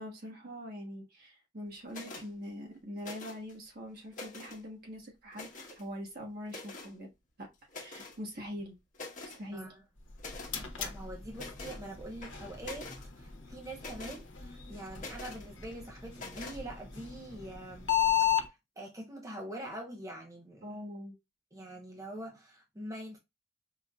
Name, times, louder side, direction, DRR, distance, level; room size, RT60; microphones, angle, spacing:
voice 1, 0.0-7.1 7.4-7.5 7.7-8.7 9.3-9.7 20.6-21.2, equal, 55° right, 1.3 m, -43 dB
sound 1, 1.9-2.3 3.0-3.5 4.0-4.6 5.3-5.8 6.5-6.9 7.7-8.2 8.6-8.7 8.9-9.4 10.2-10.5 11.3-11.8 12.2-13.1 13.8-14.2 15.0-15.4 16.1-16.6, left 3 dB, 45° left, 1.0 m, -45 dB
sound 2, 10.0-18.5, left 10 dB, 70° left, 0.9 m, -35 dB
voice 2, 10.8-17.9 18.2-20.7 21.5-23.2, right 1 dB, 15° right, 0.6 m, -44 dB
4.6 x 2.6 x 2.2 m
head